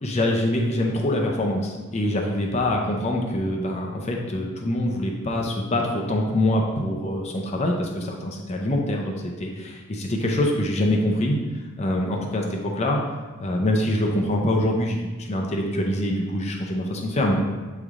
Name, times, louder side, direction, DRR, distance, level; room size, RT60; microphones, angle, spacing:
voice 1, 0.0-11.4 11.8-13.0 13.4-17.4, left 1 dB, 30° left, -1 dB, 0.6 m, -24 dB
8.1 x 3.3 x 3.7 m, 1.3 s
head